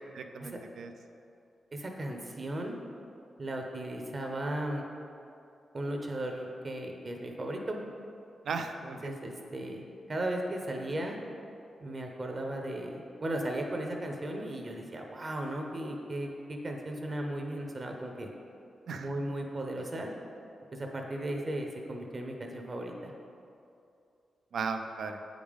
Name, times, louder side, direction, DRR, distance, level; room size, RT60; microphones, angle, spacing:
voice 1, 0.1-0.9 8.4-9.1 18.9-19.1 24.5-25.2, right 5 dB, 75° right, 6 dB, 0.4 m, -36 dB
voice 2, 1.7-2.8 3.4-4.9 5.7-7.8 8.8-9.8 10.1-11.2 11.8-18.3 19.0-20.1 20.7-23.1, right 1 dB, 35° right, 2 dB, 0.7 m, -36 dB
7.8 x 5.1 x 3.5 m, 2.6 s
cardioid pair, 85°, 0 cm